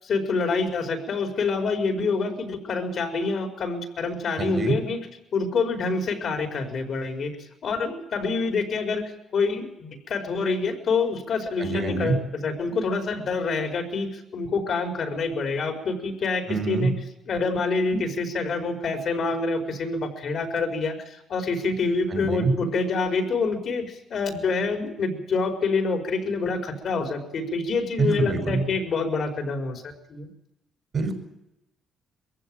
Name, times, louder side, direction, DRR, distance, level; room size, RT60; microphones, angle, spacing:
voice 1, 0.0-5.1 5.3-7.3 7.6-9.0 9.3-16.9 17.3-29.8 30.1-30.3, left 4 dB, 60° left, 6 dB, 4.8 m, -27 dB
voice 2, 4.4-4.8 11.6-12.2 16.5-16.9 22.1-22.5 28.0-28.6 30.9-31.1, right 4 dB, 45° right, 6 dB, 5.6 m, -25 dB
22.0 x 15.5 x 9.0 m, 0.91 s
cardioid pair, 90°, 0 cm